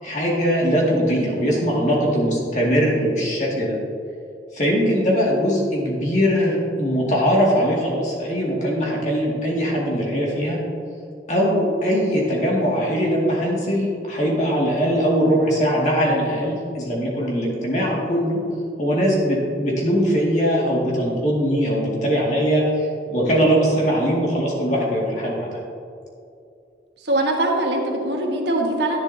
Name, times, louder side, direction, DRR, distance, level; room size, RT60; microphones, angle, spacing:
voice 1, 0.0-3.8 4.5-10.6 11.3-18.4 18.8-25.5, equal, 40° left, -4 dB, 2.1 m, -21 dB
voice 2, 27.0-29.0, right 1 dB, 80° right, 0 dB, 1.4 m, -22 dB
11.0 x 10.5 x 2.8 m, 2.5 s
head